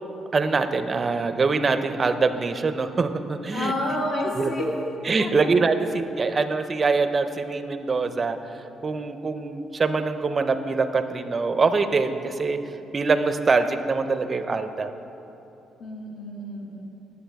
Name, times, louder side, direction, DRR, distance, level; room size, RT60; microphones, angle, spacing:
voice 1, 0.3-3.7 4.3-4.5 5.0-12.6 12.9-14.9, right 4 dB, 35° right, 9 dB, 0.5 m, -24 dB
voice 2, 3.5-4.6 5.2-5.3 5.8-5.9 15.8-16.8, left 1 dB, 60° left, -2 dB, 1.5 m, -29 dB
11.0 x 6.8 x 3.4 m, 3.0 s
cardioid pair, 90°, 0 cm